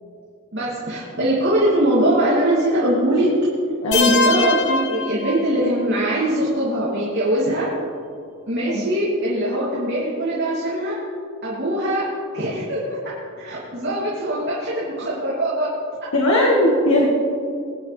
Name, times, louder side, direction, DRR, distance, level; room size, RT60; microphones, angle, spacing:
voice 1, 0.5-3.3 3.9-7.7 8.5-11.0 11.4-12.0 12.3-15.7, right 1 dB, 55° right, -8 dB, 2.9 m, -22 dB
sound 1, 3.9-5.9, left 3 dB, 55° left, 1.0 m, -23 dB
voice 2, 16.1-17.1, left 1 dB, 70° left, -3 dB, 2.0 m, -18 dB
22.5 x 10.0 x 3.5 m, 2.5 s
head